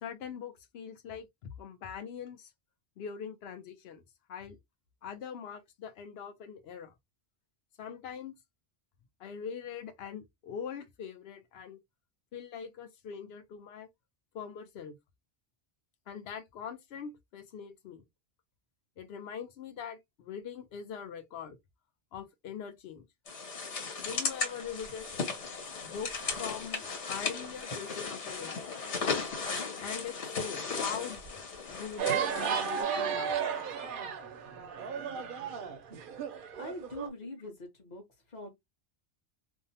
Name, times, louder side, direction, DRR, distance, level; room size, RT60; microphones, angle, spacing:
voice 1, 0.0-2.5 3.0-4.0 4.3-4.6 5.0-6.9 7.8-8.3 9.2-11.8 12.3-13.9 14.3-15.0 16.1-18.0 19.0-21.6 22.1-23.0 24.0-25.1 25.8-28.7 29.8-31.2 31.7-33.3, left 7 dB, 70° left, 0.8 m, -42 dB
sound 1, 23.3-32.8, left 4 dB, 85° left, 1.5 m, -36 dB
sound 2, 32.0-37.1, right 7 dB, 60° right, 0.6 m, -34 dB
voice 2, 36.1-38.5, left 1 dB, 40° left, 1.0 m, -45 dB
2.7 x 2.0 x 2.7 m
omnidirectional pair, 1.2 m